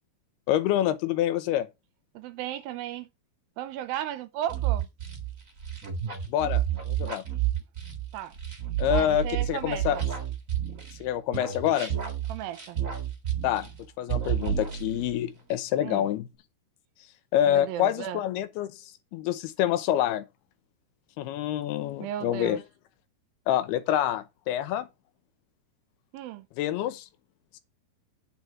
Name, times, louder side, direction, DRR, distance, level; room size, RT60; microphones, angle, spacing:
voice 1, 0.5-1.7 6.3-7.2 8.8-10.0 11.0-11.9 13.4-13.7 14.0-16.3 17.3-18.8 19.1-20.3 21.2-22.6 23.5-24.9 26.6-27.1, left 11 dB, 85° left, 2.8 m, -27 dB
voice 2, 2.2-3.1 3.6-4.9 8.1-8.3 8.8-10.0 12.3-12.8 15.8-16.1 17.5-18.2 22.0-22.6 26.1-26.5, right 11 dB, 80° right, 2.3 m, -35 dB
sound 1, 4.5-11.0 11.3-13.8 14.1-15.2, right 10 dB, 55° right, 0.9 m, -30 dB
9.5 x 4.7 x 5.8 m
omnidirectional pair, 4.6 m